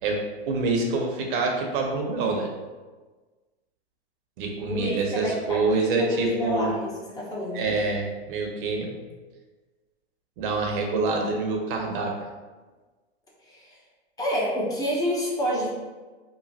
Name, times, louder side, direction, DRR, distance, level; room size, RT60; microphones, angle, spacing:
voice 1, 0.0-2.5 4.4-6.8 7.5-8.9 10.4-12.1, right 3 dB, 55° right, 1 dB, 0.8 m, -26 dB
voice 2, 4.8-5.6 6.0-7.7 13.5-13.6 14.2-15.7, equal, 10° left, -5 dB, 0.8 m, -28 dB
3.1 x 2.2 x 4.0 m, 1.3 s
hypercardioid pair, 125°, 32 cm